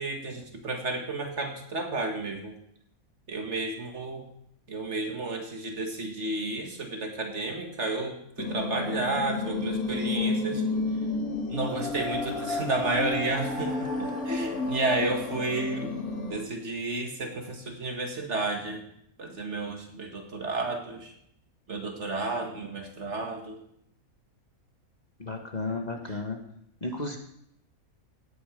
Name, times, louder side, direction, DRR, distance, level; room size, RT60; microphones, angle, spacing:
voice 1, 0.0-2.6 3.3-4.3 4.7-10.6 11.5-15.9 16.2-18.8 19.2-21.1 21.7-23.6, right 2 dB, 50° right, 4 dB, 2.0 m, -32 dB
sound 1, 8.4-16.4, left 3 dB, 80° left, 2.7 m, -31 dB
voice 2, 25.2-26.4 26.8-27.2, left 3 dB, 30° left, 3 dB, 1.5 m, -33 dB
16.5 x 9.1 x 5.1 m, 0.71 s
omnidirectional pair, 1.5 m